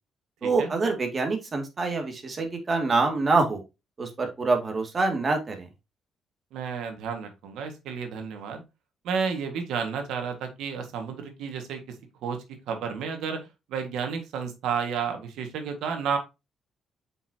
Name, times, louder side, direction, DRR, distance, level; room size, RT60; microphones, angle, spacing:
voice 1, 0.4-3.6 4.0-5.7, right 3 dB, 35° right, 4 dB, 2.2 m, -25 dB
voice 2, 6.5-8.6 9.0-11.8 12.2-16.2, right 6 dB, 85° right, 5 dB, 1.7 m, -31 dB
7.3 x 5.5 x 2.8 m, 0.25 s
cardioid pair, 90°, 0 cm